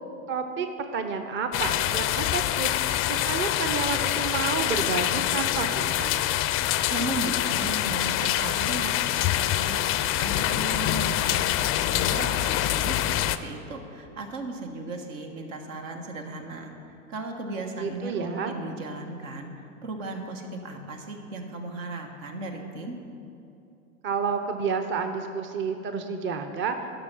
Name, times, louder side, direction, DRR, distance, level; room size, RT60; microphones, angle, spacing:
voice 1, 0.3-0.7 0.9-2.7 3.0-6.2 17.8-18.5 24.0-26.9, right 5 dB, 30° right, 6 dB, 0.7 m, -30 dB
sound 1, 1.5-13.4, left 13 dB, 35° left, 0.4 m, -25 dB
voice 2, 6.9-9.8 10.2-23.0, right 2 dB, 75° right, 3 dB, 1.4 m, -36 dB
12.0 x 5.5 x 6.1 m, 2.7 s
hypercardioid pair, 90°, 39 cm